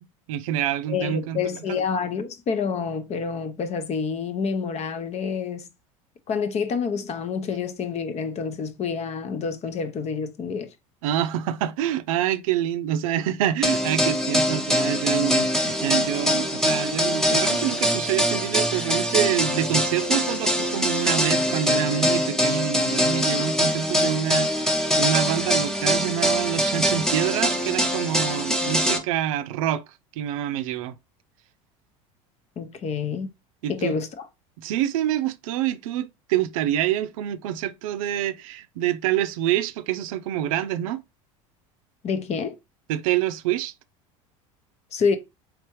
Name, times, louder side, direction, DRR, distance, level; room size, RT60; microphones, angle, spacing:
voice 1, 0.3-1.4 1.7-1.8 11.0-31.0 33.6-34.0 34.6-41.0 42.9-43.7, right 11 dB, 75° right, 0.4 m, -26 dB
voice 2, 0.9-5.7 6.3-10.7 32.6-33.3 33.7-34.3 42.0-42.5 44.9-45.2, left 6 dB, 40° left, 0.7 m, -28 dB
sound 1, 13.6-29.0, equal, 5° left, 0.9 m, -23 dB
3.5 x 3.4 x 3.0 m
hypercardioid pair, 90°, 17 cm